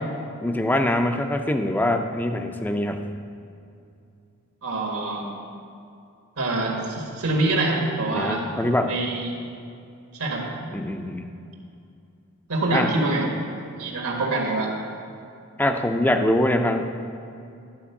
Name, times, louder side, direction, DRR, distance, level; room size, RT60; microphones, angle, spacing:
voice 1, 0.4-3.0 8.1-8.9 10.7-11.3 12.7-12.9 15.6-16.8, left 1 dB, 10° left, 6 dB, 0.4 m, -23 dB
voice 2, 4.6-5.3 6.4-8.5 8.8-9.3 10.1-10.4 12.5-13.3 13.8-14.7, right 2 dB, 80° right, -1 dB, 1.8 m, -25 dB
11.0 x 4.5 x 7.0 m, 2.5 s
head